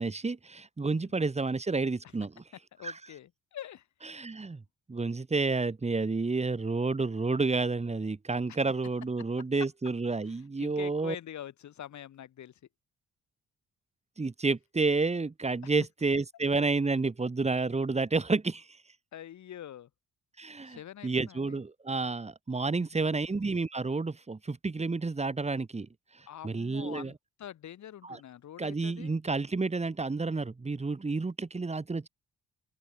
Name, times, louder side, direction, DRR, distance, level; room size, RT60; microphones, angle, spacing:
voice 1, 0.0-2.4 2.8-2.9 4.1-4.6 4.9-11.1 14.2-18.7 20.4-25.9 26.4-27.1 28.0-28.2 28.6-32.1, right 3 dB, 20° right, 2.7 m, -30 dB
voice 2, 2.7-3.9 8.5-8.6 10.2-12.6 15.6-15.7 19.1-19.9 20.7-21.6 22.7-23.2 26.3-29.2, left 11 dB, 70° left, 6.0 m, -45 dB
open air
cardioid pair, 90°, 30 cm